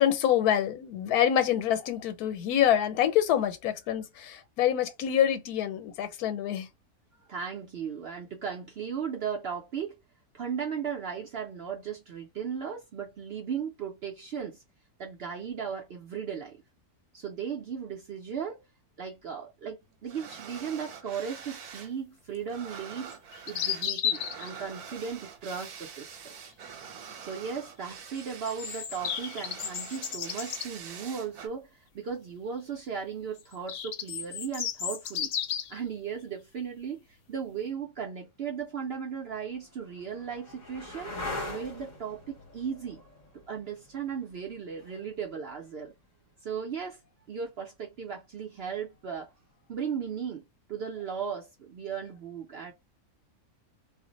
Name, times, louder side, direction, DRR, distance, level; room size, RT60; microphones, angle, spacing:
voice 1, 0.0-6.7, left 10 dB, 85° left, 1.1 m, -26 dB
voice 2, 7.3-10.0 10.3-14.6 15.0-16.6 17.1-18.6 19.0-23.1 23.5-26.3 27.2-31.7 31.9-35.3 35.7-37.0 37.3-41.1 41.5-43.0 43.5-45.9 46.4-47.0 47.3-49.3 49.7-50.4 50.7-52.7, right 7 dB, 60° right, 0.6 m, -36 dB
sound 1, 20.1-21.9 22.2-31.5, right 7 dB, 90° right, 1.2 m, -45 dB
sound 2, 23.1-24.5 28.2-30.7 33.4-35.8, left 9 dB, 70° left, 0.9 m, -33 dB
sound 3, 38.9-46.5 48.9-49.4, left 2 dB, 40° left, 0.7 m, -43 dB
2.5 x 2.1 x 3.8 m
omnidirectional pair, 1.6 m